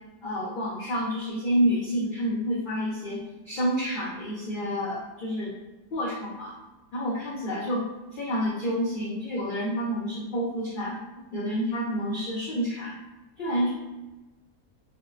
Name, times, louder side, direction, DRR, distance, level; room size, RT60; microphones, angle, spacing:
voice 1, 0.2-5.6 5.9-6.5 6.9-7.8 8.1-11.0 11.3-12.9 13.4-13.7, equal, 65° left, -5 dB, 0.5 m, -29 dB
4.5 x 2.1 x 2.4 m, 1.1 s
omnidirectional pair, 1.6 m